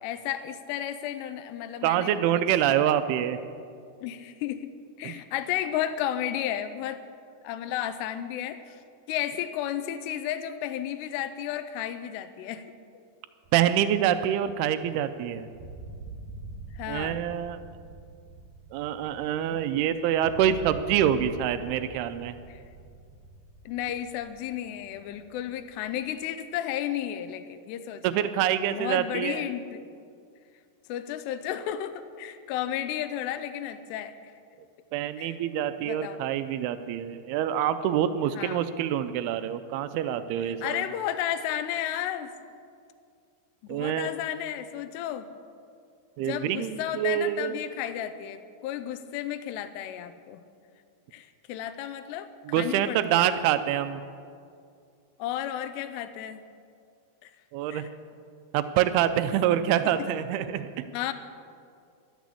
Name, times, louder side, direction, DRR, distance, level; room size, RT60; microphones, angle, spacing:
voice 1, 0.0-2.2 4.0-4.7 5.0-7.0 7.4-8.8 9.1-12.6 16.7-17.2 22.5-22.6 23.7-28.3 28.7-29.8 30.9-34.2 35.2-35.4 35.8-36.2 38.3-38.7 40.4-42.3 43.6-45.3 46.2-50.4 51.1-52.3 52.6-53.3 55.2-56.4 57.2-57.3 57.7-57.9 60.9-61.1, left 11 dB, 85° left, 10 dB, 2.6 m, -33 dB
voice 2, 1.8-3.4 5.0-5.1 13.5-15.5 16.9-17.6 18.7-22.3 28.0-29.5 34.9-40.8 43.7-44.1 46.2-47.6 52.5-54.0 57.5-57.9 58.5-60.8, right 10 dB, 90° right, 11 dB, 2.3 m, -26 dB
sound 1, 13.4-15.2 15.5-26.2, right 3 dB, 70° right, 2.1 m, -46 dB
12.5 x 12.0 x 8.3 m, 2.3 s
omnidirectional pair, 5.1 m